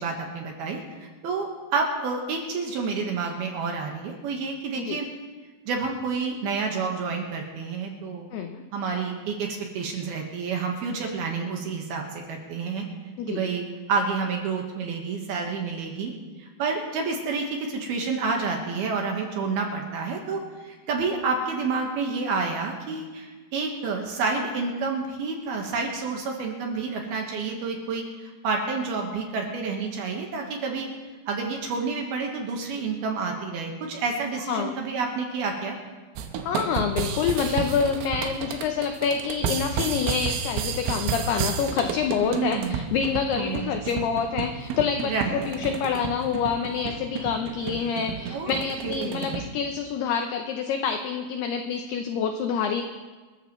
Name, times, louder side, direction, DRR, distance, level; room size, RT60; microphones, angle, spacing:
voice 1, 0.0-5.1 5.7-8.3 8.7-12.8 13.3-16.1 16.4-30.9 31.3-35.8 42.2-42.9 43.4-43.7 45.0-45.5 48.3-49.4, right 4 dB, 65° right, 1 dB, 2.9 m, -29 dB
voice 2, 8.3-8.6 13.2-13.4 34.5-34.8 36.4-52.8, left 6 dB, 85° left, 6 dB, 2.3 m, -27 dB
sound 1, 36.2-49.5, right 6 dB, 85° right, 3.6 m, -32 dB
27.5 x 14.5 x 3.1 m, 1.3 s
omnidirectional pair, 5.6 m